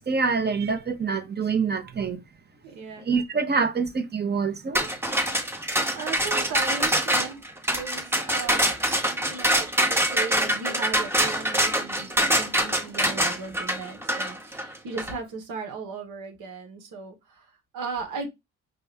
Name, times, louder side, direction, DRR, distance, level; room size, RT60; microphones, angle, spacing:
voice 1, 0.0-2.2 3.1-4.9, right 5 dB, 35° right, 1.0 m, -26 dB
voice 2, 2.6-3.1 5.2-5.6 5.9-7.4 7.7-9.0 9.3-18.3, right 4 dB, 90° right, 1.6 m, -37 dB
sound 1, 4.7-15.1, equal, 10° right, 1.0 m, -24 dB
5.8 x 2.5 x 3.4 m
cardioid pair, 90°, 30 cm